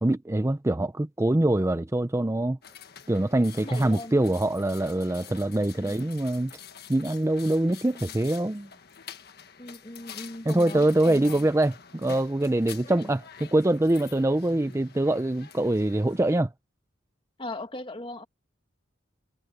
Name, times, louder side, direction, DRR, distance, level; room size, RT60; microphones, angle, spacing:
voice 1, 0.0-2.6 3.1-6.5 6.9-8.7 10.5-16.5, right 1 dB, 15° right, 0.5 m, -24 dB
sound 1, 2.6-16.4, left 8 dB, 55° left, 1.6 m, -47 dB
voice 2, 3.6-4.2 5.7-6.1 7.9-8.3 9.6-11.5 12.8-13.1 17.4-18.3, left 2 dB, 25° left, 1.4 m, -39 dB
head